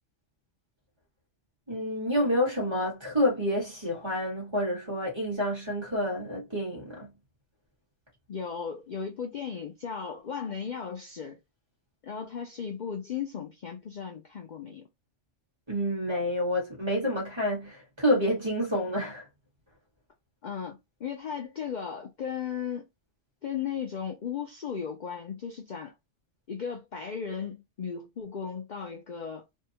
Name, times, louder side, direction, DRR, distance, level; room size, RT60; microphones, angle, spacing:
voice 1, 1.7-7.1 15.7-19.3, equal, 25° right, 1.4 m, -28 dB
voice 2, 8.3-11.4 12.0-14.9 20.4-22.8 23.4-25.9 26.5-29.4, left 7 dB, 50° left, 0.6 m, -36 dB
2.7 x 2.3 x 2.7 m
omnidirectional pair, 1.2 m